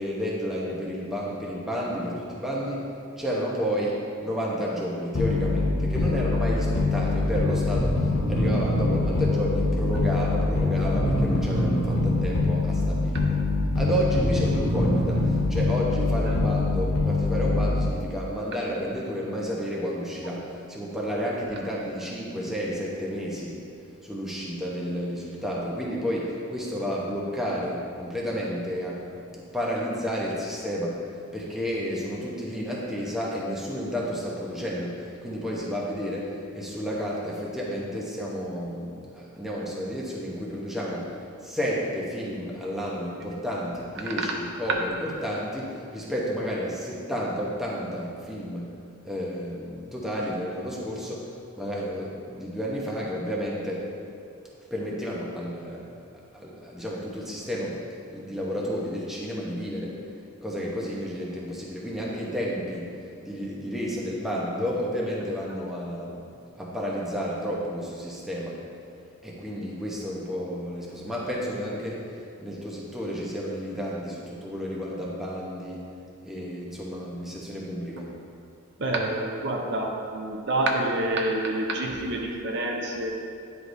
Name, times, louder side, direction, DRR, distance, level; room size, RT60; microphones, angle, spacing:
voice 1, 0.0-13.4 13.8-23.6 24.0-41.2 41.4-48.8 49.0-53.9 54.7-55.9 56.3-57.8 58.1-60.0 60.4-62.9 63.2-66.2 66.5-68.6 69.2-75.9 76.2-78.1, equal, ahead, -5 dB, 0.8 m, -31 dB
sound 1, 5.1-18.1, left 2 dB, 85° left, 0.9 m, -24 dB
voice 2, 78.8-83.1, right 1 dB, 50° right, 0 dB, 0.6 m, -27 dB
9.8 x 4.7 x 2.6 m, 2.5 s
head